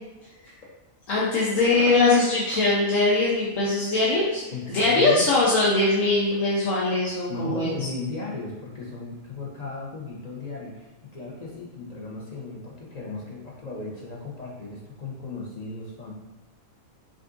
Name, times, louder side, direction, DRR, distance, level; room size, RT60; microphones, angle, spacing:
voice 1, 1.1-4.4 4.7-7.7, left 2 dB, 80° left, -7 dB, 1.2 m, -21 dB
voice 2, 4.5-5.3 7.3-10.9 11.1-16.1, left 3 dB, 35° left, -4 dB, 0.8 m, -35 dB
6.2 x 2.7 x 2.5 m, 1.1 s
omnidirectional pair, 1.3 m